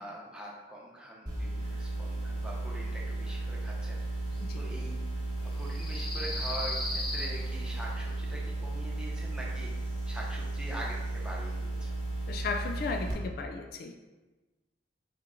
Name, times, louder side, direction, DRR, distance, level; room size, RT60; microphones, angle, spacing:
voice 1, 0.0-4.3 4.6-5.3 5.6-11.9, right 1 dB, 5° right, -4 dB, 0.8 m, -43 dB
sound 1, 1.3-13.1, right 2 dB, 25° right, 1.1 m, -35 dB
sound 2, 1.6-13.0, left 2 dB, 25° left, 0.7 m, -43 dB
voice 2, 12.3-13.9, left 4 dB, 55° left, 4 dB, 0.3 m, -35 dB
4.4 x 2.9 x 3.7 m, 1.1 s
head